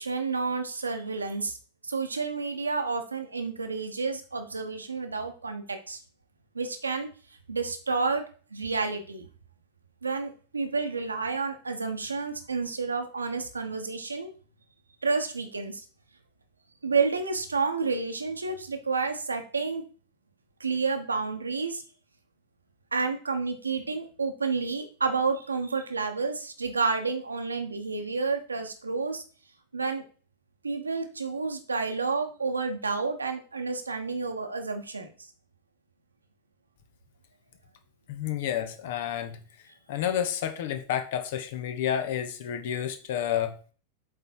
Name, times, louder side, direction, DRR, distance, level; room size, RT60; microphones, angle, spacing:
voice 1, 0.0-1.6 1.8-6.0 6.5-7.1 7.5-8.2 8.5-9.3 10.0-14.3 15.0-15.8 16.8-19.8 20.6-21.8 22.9-29.2 29.7-30.0 30.6-35.1, right 4 dB, 80° right, 6 dB, 1.1 m, -30 dB
voice 2, 38.1-39.4 39.9-43.6, left 10 dB, 55° left, 8 dB, 1.1 m, -30 dB
7.9 x 4.0 x 4.7 m, 0.38 s
figure-of-eight pair, 90°, 0 cm